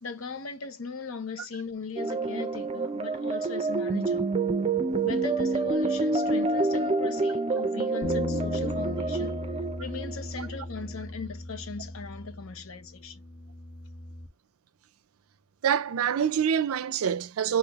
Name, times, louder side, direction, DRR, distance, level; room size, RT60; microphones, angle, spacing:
voice 1, 0.0-4.3 5.0-9.4 9.8-13.2, left 4 dB, 70° left, 0.8 m, -38 dB
sound 1, 2.0-10.6, right 3 dB, 30° right, 0.5 m, -28 dB
sound 2, 8.0-14.3, left 3 dB, 50° left, 1.2 m, -37 dB
voice 2, 15.6-17.6, right 8 dB, 85° right, 0.4 m, -26 dB
3.4 x 2.6 x 3.5 m
head